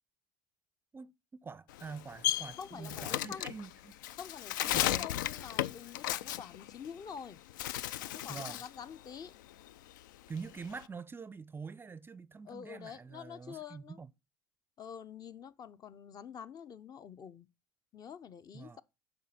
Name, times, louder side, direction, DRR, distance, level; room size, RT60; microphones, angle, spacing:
voice 1, 0.9-3.9 4.7-5.1 8.3-8.6 10.3-14.1 18.5-18.8, right 5 dB, 20° right, 0.5 m, -45 dB
Bird, 1.7-7.2 7.5-8.8 9.1-10.8, left 13 dB, 80° left, 0.4 m, -35 dB
voice 2, 2.6-3.5 4.1-7.4 8.0-9.3 12.5-14.0 14.8-17.5 17.9-18.8, left 7 dB, 40° left, 0.7 m, -47 dB
7.4 x 5.2 x 5.7 m
hypercardioid pair, 75°, 10 cm